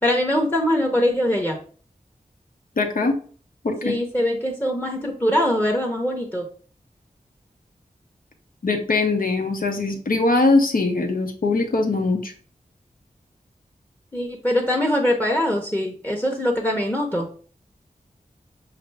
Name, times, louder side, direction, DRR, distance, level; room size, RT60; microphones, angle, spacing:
voice 1, 0.0-1.6 3.8-6.5 14.1-17.3, left 1 dB, 10° left, 1 dB, 0.9 m, -22 dB
voice 2, 2.8-3.2 3.6-4.0 8.6-12.3, left 3 dB, 70° left, 3 dB, 0.9 m, -21 dB
5.7 x 2.6 x 3.3 m, 0.42 s
wide cardioid pair, 70°, 15 cm